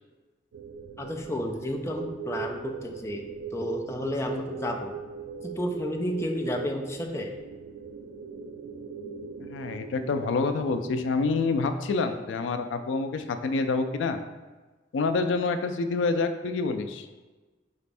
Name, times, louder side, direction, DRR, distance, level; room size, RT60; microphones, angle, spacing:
sound 1, 0.5-12.8, right 6 dB, 80° right, 0.3 m, -40 dB
voice 1, 1.0-3.3 3.5-4.9 5.4-7.3, left 1 dB, 15° left, 2 dB, 0.4 m, -31 dB
voice 2, 9.5-14.2 14.9-17.1, left 4 dB, 90° left, 8 dB, 0.4 m, -27 dB
4.9 x 2.5 x 3.3 m, 1.3 s
head